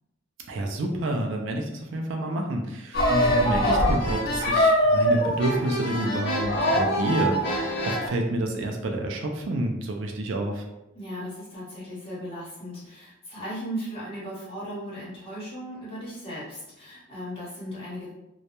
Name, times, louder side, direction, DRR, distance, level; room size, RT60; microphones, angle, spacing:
voice 1, 0.5-10.6, right 1 dB, 60° right, 2 dB, 0.3 m, -29 dB
sound 1, 2.9-8.1, equal, 50° left, 0.5 m, -23 dB
voice 2, 10.9-18.1, equal, 25° left, -8 dB, 0.9 m, -37 dB
2.2 x 2.0 x 2.8 m, 0.90 s
head